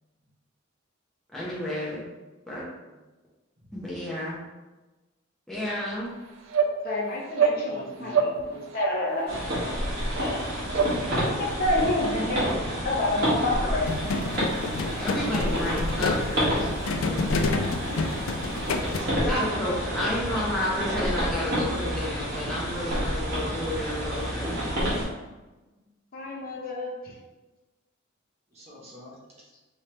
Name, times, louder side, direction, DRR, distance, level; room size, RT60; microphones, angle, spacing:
voice 1, 1.3-2.0 2.5-2.6 3.7-4.4 5.5-6.1 15.0-16.6 19.1-24.7, left 1 dB, ahead, -8 dB, 0.7 m, -31 dB
sound 1, 5.9-6.0 6.5-6.7 7.3-7.6 8.1-8.4 8.7-9.0 9.4-9.6 10.1-10.2 10.7-10.9, right 6 dB, 70° right, 0.4 m, -24 dB
voice 2, 6.8-8.3 8.7-9.8 10.2-10.4 11.0-12.5 12.8-13.9 14.8-15.0 19.7-19.9 26.1-27.1, left 1 dB, 45° left, -2 dB, 0.6 m, -29 dB
voice 3, 7.5-8.6 18.8-19.4 28.5-29.4, equal, 30° right, -5 dB, 1.0 m, -45 dB
sound 2, 9.3-25.1, equal, 50° right, 1.3 m, -29 dB
sound 3, 13.9-19.0, left 3 dB, 80° left, 0.4 m, -29 dB
3.2 x 3.1 x 2.9 m, 1.1 s
head